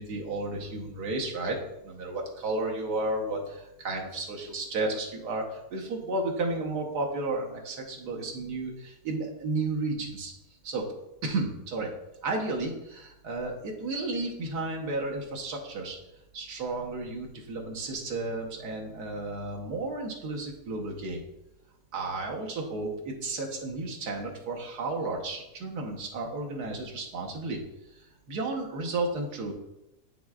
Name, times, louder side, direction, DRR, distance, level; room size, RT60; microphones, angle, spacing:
voice 1, 0.0-1.6 1.8-10.3 10.6-10.9 11.2-11.9 12.2-16.0 16.3-21.2 21.9-27.6 28.3-29.5, right 2 dB, 75° right, 0 dB, 1.6 m, -33 dB
8.6 x 6.2 x 2.3 m, 0.91 s
omnidirectional pair, 1.8 m